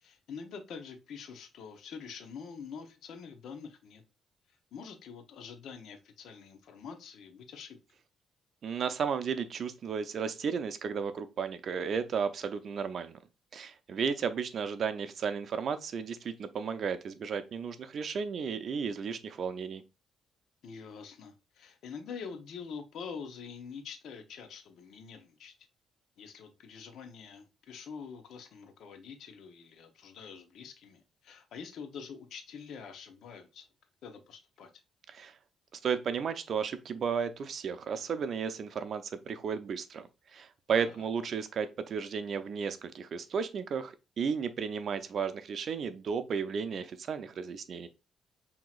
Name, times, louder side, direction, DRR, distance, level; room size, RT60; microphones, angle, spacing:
voice 1, 0.0-4.0 4.5-7.8 20.6-25.5 26.2-33.7 34.0-34.7 40.8-41.1, left 6 dB, 75° left, 0.8 m, -46 dB
voice 2, 8.6-13.2 13.5-19.8 35.1-35.3 35.7-47.9, right 6 dB, 55° right, 0.5 m, -34 dB
5.8 x 2.9 x 2.4 m
cardioid pair, 90°, 0 cm